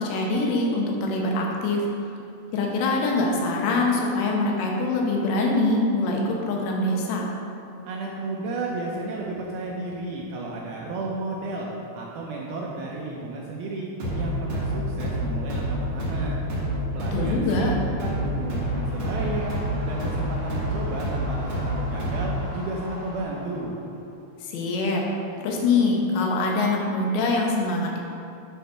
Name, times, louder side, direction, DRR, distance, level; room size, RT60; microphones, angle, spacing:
voice 1, 0.0-1.8 2.5-7.3 17.1-17.7 24.4-25.0 25.4-28.0, left 2 dB, 80° left, -1 dB, 3.2 m, -24 dB
voice 2, 7.9-13.9 14.1-16.4 16.9-17.7 18.0-19.5 19.8-23.8, right 3 dB, 75° right, -3 dB, 2.3 m, -33 dB
sound 1, 14.0-22.5, equal, 50° right, 2.2 m, -28 dB
sound 2, 17.3-24.3, equal, 45° left, 2.0 m, -43 dB
9.2 x 4.1 x 5.7 m, 2.6 s
omnidirectional pair, 5.0 m